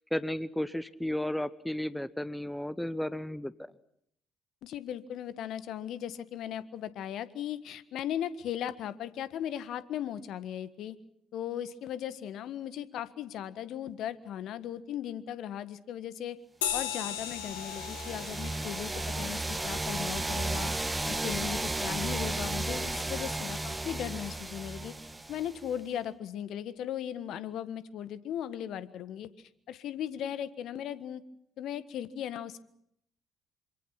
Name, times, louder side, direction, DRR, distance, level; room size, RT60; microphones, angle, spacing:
voice 1, 0.1-3.5, left 1 dB, 5° left, 16 dB, 1.2 m, -33 dB
voice 2, 4.6-11.0 11.3-16.4 16.7-20.7 21.1-25.0 25.3-31.2 31.6-32.6, left 10 dB, 60° left, 14 dB, 1.6 m, -37 dB
sound 1, 16.6-21.5, left 10 dB, 75° left, 1.8 m, -39 dB
sound 2, 17.0-25.7, right 2 dB, 15° right, 2.2 m, -34 dB
27.0 x 25.5 x 6.0 m, 0.72 s
figure-of-eight pair, 50°, 0 cm